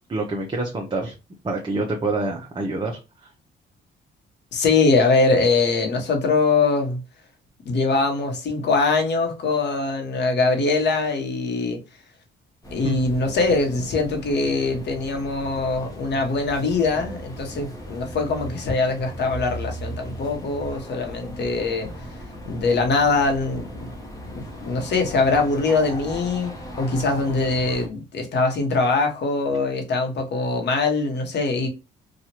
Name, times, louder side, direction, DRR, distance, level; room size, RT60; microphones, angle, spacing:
voice 1, 0.1-1.1 1.4-3.0 12.8-13.0, right 2 dB, 25° right, 0.7 m, -26 dB
voice 2, 4.5-7.0 7.6-11.8 12.7-21.9 22.4-23.9 24.3-26.5 26.8-31.7, left 3 dB, 60° left, 1.0 m, -22 dB
sound 1, 12.6-27.9, equal, 15° left, 0.9 m, -37 dB
3.0 x 2.4 x 2.9 m
cardioid pair, 90°, 20 cm